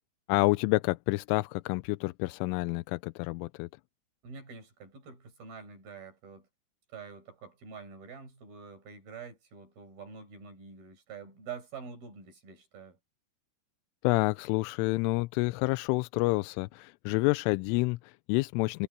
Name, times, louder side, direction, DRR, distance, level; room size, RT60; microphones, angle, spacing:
voice 1, 0.3-3.7 14.0-18.9, left 24 dB, 85° left, 3.1 m, -28 dB
voice 2, 4.2-6.5 6.9-13.0, right 5 dB, 50° right, 7.5 m, -46 dB
omnidirectional pair, 5.6 m